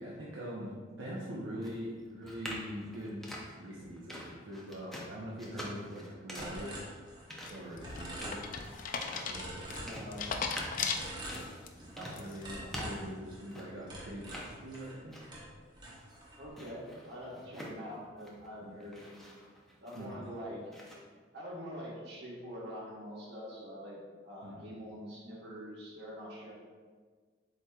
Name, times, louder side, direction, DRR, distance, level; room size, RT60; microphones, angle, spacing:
voice 1, 0.0-6.8 7.1-8.7 9.0-9.9 10.2-10.4 12.0-15.5 17.3-17.4 18.6-18.7 19.9-20.2 24.4-24.7, equal, 75° right, -5 dB, 0.7 m, -43 dB
sound 1, 1.6-13.9 14.2-15.5 15.8-18.5 18.8-20.3 20.7-20.9, equal, ahead, 0.6 m, -46 dB
sound 2, 6.4-7.5 7.8-8.9 9.3-10.5 10.9-12.1 12.4-15.0 15.3-16.5, right 1 dB, 25° right, 0.9 m, -46 dB
sound 3, 7.5-11.7 12.1-12.6, left 5 dB, 45° left, 0.4 m, -37 dB
voice 2, 9.7-10.2 12.6-12.9 16.4-19.2 19.8-20.6 21.3-24.0 24.2-26.5, equal, 60° right, -6 dB, 1.4 m, -45 dB
7.9 x 2.9 x 2.3 m, 1.5 s
head